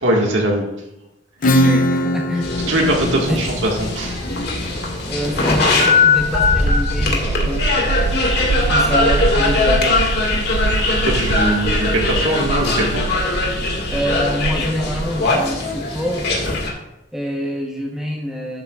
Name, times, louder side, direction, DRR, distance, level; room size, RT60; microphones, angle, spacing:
voice 1, 0.0-0.6 1.4-1.7 2.7-4.2 10.8-13.0, right 1 dB, 80° right, -1 dB, 1.8 m, -21 dB
Acoustic guitar / Strum, 1.4-6.8, left 1 dB, 45° left, 0.5 m, -22 dB
voice 2, 1.6-2.6 3.3-3.4 5.1-8.1 8.7-10.0 13.9-16.2 17.1-18.6, equal, 5° right, -2 dB, 1.0 m, -26 dB
sound 1, 2.4-16.7, left 3 dB, 60° left, 2.0 m, -20 dB
sound 2, 6.2-15.2, right 4 dB, 55° right, 0.3 m, -24 dB
12.0 x 8.1 x 2.4 m, 0.91 s
head